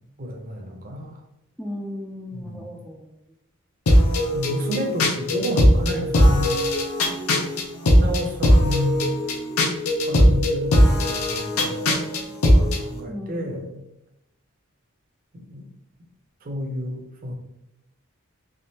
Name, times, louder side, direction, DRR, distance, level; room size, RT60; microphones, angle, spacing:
voice 1, 0.2-1.2 2.3-2.8 4.3-6.6 7.9-9.1 10.0-11.8 12.5-13.8 15.3-15.6 16.4-17.3, left 1 dB, 40° right, 2 dB, 0.6 m, -30 dB
voice 2, 1.6-3.1 7.5-8.1 13.1-13.6, left 1 dB, 5° left, -1 dB, 0.3 m, -36 dB
sound 1, 3.9-12.8, equal, 85° left, 0.7 m, -19 dB
3.5 x 3.3 x 2.8 m, 0.84 s
head